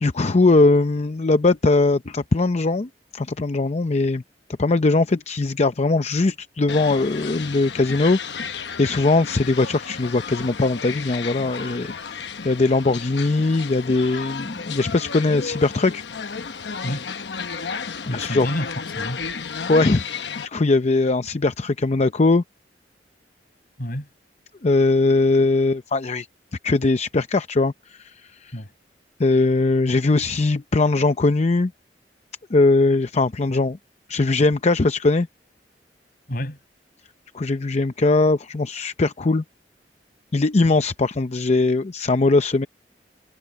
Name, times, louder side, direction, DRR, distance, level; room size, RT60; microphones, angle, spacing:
voice 1, 0.0-4.2 4.6-16.0 18.0-18.5 19.7-20.0 20.4-22.4 24.6-26.3 26.6-28.5 29.2-31.7 32.5-33.8 34.1-35.3 37.3-39.4 40.3-42.7, left 3 dB, 40° left, 0.6 m, -20 dB
sound 1, 6.7-20.5, left 5 dB, 75° left, 1.0 m, -33 dB
voice 2, 18.1-18.7 19.0-19.2 23.8-24.1 28.5-28.7 33.5-33.6 36.3-36.6, equal, 55° left, 5.8 m, -29 dB
head